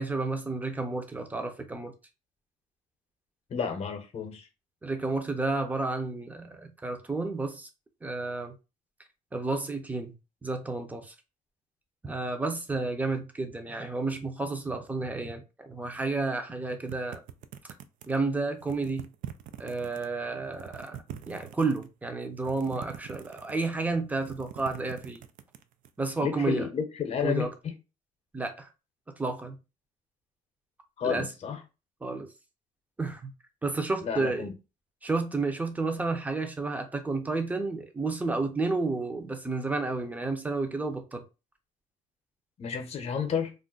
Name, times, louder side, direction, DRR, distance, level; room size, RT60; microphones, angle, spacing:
voice 1, 0.0-1.9 4.8-7.7 8.0-8.5 9.3-10.1 10.4-11.1 12.0-17.2 18.1-19.1 19.6-21.0 21.3-25.2 26.0-26.7 27.2-27.5 28.3-28.7 29.2-29.5 31.0-31.3 32.0-32.3 33.0-33.3 33.6-34.5 35.0-41.2, right 3 dB, 10° right, 0.6 m, -31 dB
voice 2, 3.5-4.5 26.2-27.7 31.0-31.6 34.0-34.5 42.6-43.5, left 7 dB, 45° left, 0.8 m, -31 dB
sound 1, 16.9-18.2 18.6-20.1 20.4-21.9 22.4-23.8 24.1-25.9, right 10 dB, 65° right, 0.4 m, -44 dB
2.5 x 2.1 x 3.8 m
cardioid pair, 110°, 15 cm